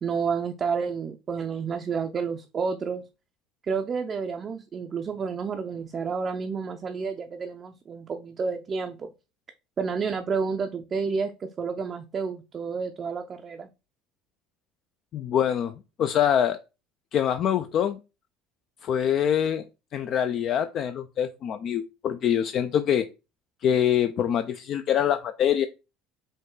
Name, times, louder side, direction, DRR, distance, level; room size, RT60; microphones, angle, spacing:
voice 1, 0.0-3.0 3.6-9.1 9.8-13.7, right 5 dB, 35° right, 5 dB, 0.4 m, -30 dB
voice 2, 15.1-15.7 16.0-16.6 17.1-18.0 18.8-19.6 19.9-23.1 23.6-25.7, left 9 dB, 50° left, 9 dB, 0.3 m, -24 dB
5.2 x 2.3 x 3.7 m, 0.29 s
supercardioid pair, 105°, 0 cm